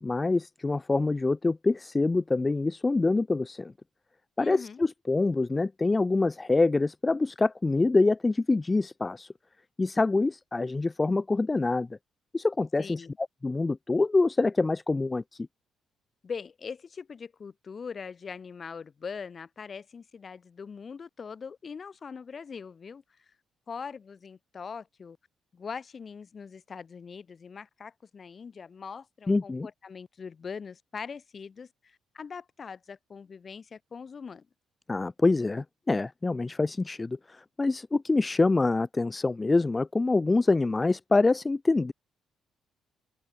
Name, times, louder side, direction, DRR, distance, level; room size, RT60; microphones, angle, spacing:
voice 1, 0.0-3.7 4.4-9.3 9.8-12.0 12.3-13.0 13.4-15.5 29.3-29.7 34.9-41.9, left 3 dB, 20° left, 0.3 m, -25 dB
voice 2, 4.4-4.8 12.8-13.2 16.2-23.3 23.7-25.2 25.5-34.5, left 6 dB, 40° left, 1.8 m, -42 dB
open air
cardioid pair, 90°, 0 cm